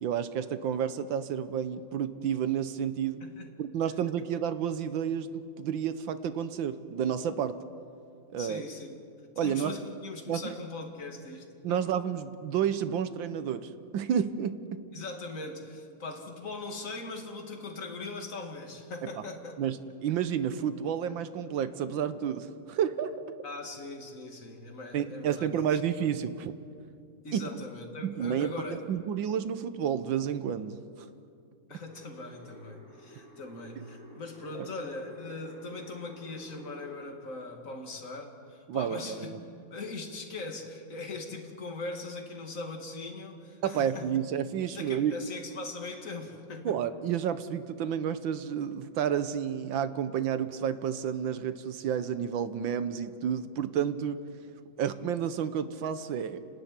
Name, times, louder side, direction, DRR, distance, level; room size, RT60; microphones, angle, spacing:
voice 1, 0.0-3.2 3.6-7.6 8.3-8.7 9.4-9.7 10.3-10.5 11.6-14.9 19.6-23.1 24.9-26.5 27.3-27.5 28.0-31.1 33.8-33.9 34.6-34.7 38.7-39.4 43.6-45.1 46.7-54.2 54.8-56.4, right 8 dB, 80° right, 12 dB, 1.6 m, -30 dB
voice 2, 8.4-9.0 9.4-11.9 14.9-19.6 23.4-25.8 27.2-28.9 31.7-39.4 39.7-44.1 44.7-46.8, left 3 dB, 45° left, 2 dB, 2.5 m, -40 dB
sound 1, 31.9-37.0, equal, 25° right, 5.2 m, -52 dB
30.0 x 12.5 x 9.6 m, 2.5 s
omnidirectional pair, 2.1 m